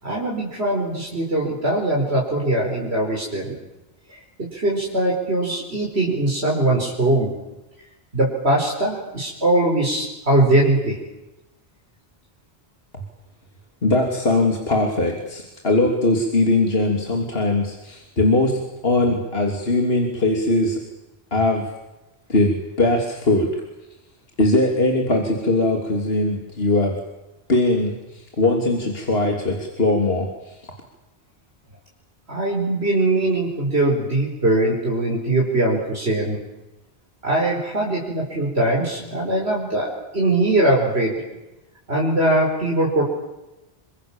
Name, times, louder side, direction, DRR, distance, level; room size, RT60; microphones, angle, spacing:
voice 1, 0.0-3.6 4.1-7.3 8.1-11.0 32.3-36.4 37.2-39.9 40.1-41.2 41.9-43.0, right 1 dB, 75° right, -3 dB, 5.2 m, -21 dB
voice 2, 13.8-20.8 21.3-21.7 22.3-23.6 24.4-27.0 27.5-30.7, left 2 dB, 70° left, 1 dB, 3.4 m, -20 dB
27.0 x 25.5 x 7.4 m, 0.99 s
omnidirectional pair, 1.1 m